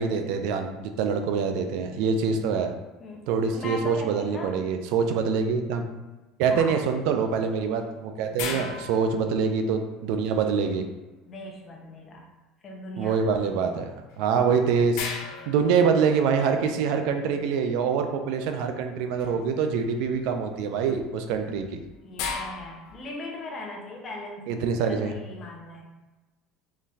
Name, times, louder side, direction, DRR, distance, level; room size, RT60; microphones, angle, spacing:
voice 1, 0.0-2.7 3.3-5.9 6.4-10.8 13.0-15.0 15.5-21.8 24.5-25.2, right 6 dB, 65° right, 6 dB, 0.4 m, -25 dB
voice 2, 3.0-4.6 6.4-6.7 8.3-8.8 11.3-12.3 12.6-13.2 13.5-13.8 22.0-25.8, left 2 dB, 30° left, 0 dB, 0.7 m, -39 dB
sound 1, 8.4-9.9 14.1-14.2 14.9-16.5 19.2-19.5 20.0-20.4 21.3-23.2, left 5 dB, 65° left, 0.5 m, -36 dB
3.9 x 3.0 x 2.7 m, 1.1 s
cardioid pair, 160°, 0 cm